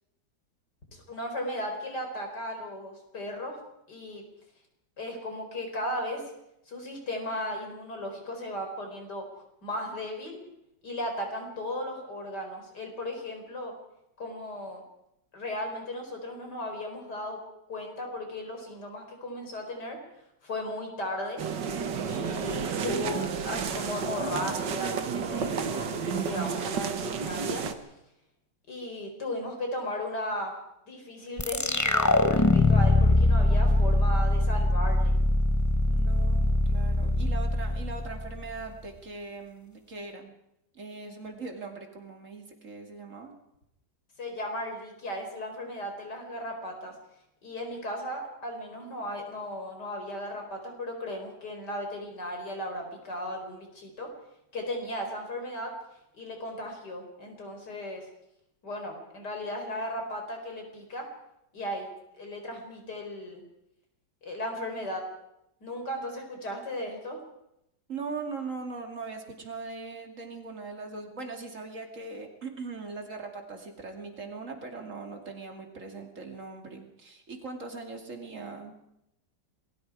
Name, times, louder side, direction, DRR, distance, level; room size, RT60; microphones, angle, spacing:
voice 1, 0.9-3.6 3.9-4.2 5.0-6.3 6.7-9.3 9.6-10.4 10.8-13.7 14.2-14.8 15.3-17.4 17.7-20.0 20.4-21.4 22.1-27.7 28.7-30.6 30.9-35.1 44.2-46.9 47.4-54.1 54.5-55.7 56.2-58.1 58.6-61.1 61.5-61.9 62.2-63.4 64.2-65.0 65.6-67.2, left 1 dB, 65° left, 3 dB, 5.0 m, -36 dB
sound 1, 21.4-27.7, right 6 dB, 80° right, 2.0 m, -31 dB
sound 2, 31.4-38.7, left 2 dB, 15° left, 0.7 m, -23 dB
voice 2, 35.9-40.3 40.7-43.3 67.9-78.8, right 4 dB, 45° right, 3 dB, 3.0 m, -40 dB
27.5 x 20.5 x 4.9 m, 0.82 s
omnidirectional pair, 1.9 m